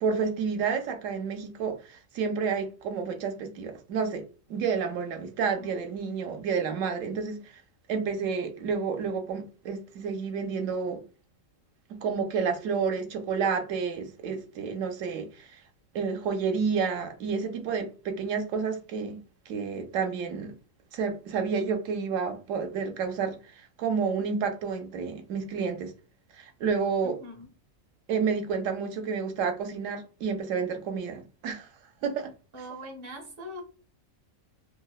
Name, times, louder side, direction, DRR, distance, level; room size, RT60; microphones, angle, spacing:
voice 1, 0.0-4.2 4.5-7.6 7.9-11.0 12.0-15.6 15.9-19.2 19.5-20.5 20.9-25.9 26.4-27.2 28.1-31.7 32.0-32.3, right 5 dB, 75° right, 1.0 m, -30 dB
voice 2, 27.0-27.5 32.5-33.6, equal, 30° right, 0.6 m, -42 dB
2.8 x 2.0 x 2.3 m
omnidirectional pair, 1.4 m